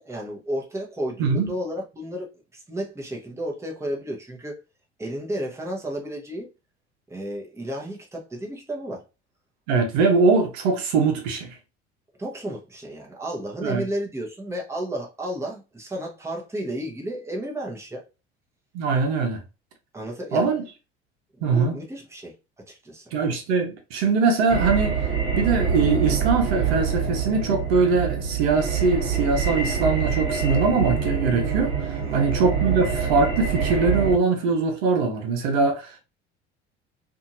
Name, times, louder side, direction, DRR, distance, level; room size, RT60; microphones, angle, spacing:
voice 1, 0.0-4.6 5.0-6.5 7.1-9.0 12.2-18.1 19.9-20.5 21.4-22.3 22.7-23.1 32.0-32.2, equal, 10° right, 1.0 m, -32 dB
voice 2, 1.2-1.5 9.7-11.6 13.6-13.8 18.7-19.4 20.3-20.6 21.4-21.7 23.1-25.0 25.3-36.0, right 4 dB, 70° right, 0.9 m, -22 dB
sound 1, 24.5-34.2, right 6 dB, 40° right, 1.2 m, -25 dB
2.7 x 2.6 x 2.6 m
hypercardioid pair, 60°, 33 cm